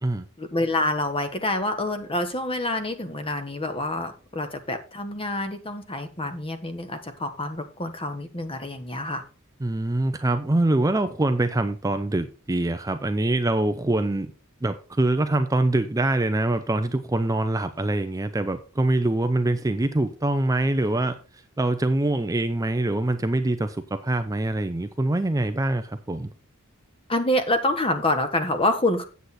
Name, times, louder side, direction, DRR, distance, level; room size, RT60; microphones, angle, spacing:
voice 1, 0.4-9.2 27.1-29.0, left 1 dB, 25° left, 8 dB, 1.2 m, -27 dB
voice 2, 9.6-14.3 14.6-26.3, right 2 dB, 15° right, 9 dB, 0.5 m, -24 dB
8.2 x 8.0 x 4.1 m, 0.35 s
head